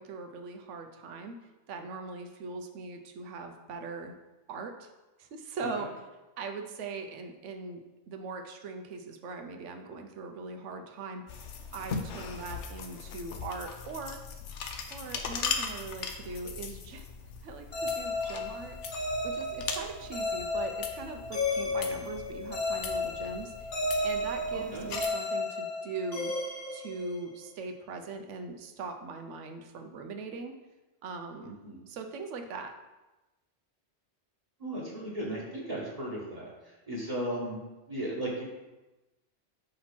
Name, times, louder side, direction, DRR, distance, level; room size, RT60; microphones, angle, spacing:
voice 1, 0.0-1.3 1.7-4.1 4.5-4.9 5.2-5.9 6.4-11.2 11.7-14.2 14.9-17.1 17.4-23.7 24.0-26.3 26.7-30.5 31.0-31.6 31.9-32.7, right 4 dB, 85° right, 5 dB, 1.0 m, -40 dB
sound 1, 11.3-25.1, left 6 dB, 80° left, 1.0 m, -40 dB
sound 2, 17.7-27.5, left 2 dB, 55° left, 1.5 m, -33 dB
voice 2, 24.5-24.9 31.4-31.8 34.6-37.6 37.9-38.4, right 1 dB, 35° right, -5 dB, 1.3 m, -36 dB
5.1 x 4.4 x 5.8 m, 1.1 s
omnidirectional pair, 1.2 m